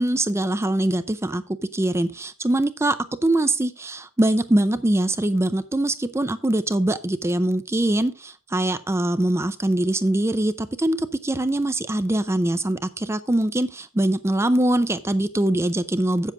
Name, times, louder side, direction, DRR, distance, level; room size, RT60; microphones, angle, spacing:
voice 1, 0.0-1.4 1.7-3.0 3.2-16.3, right 1 dB, 15° right, 12 dB, 0.4 m, -23 dB
8.0 x 7.4 x 4.8 m, 0.33 s
head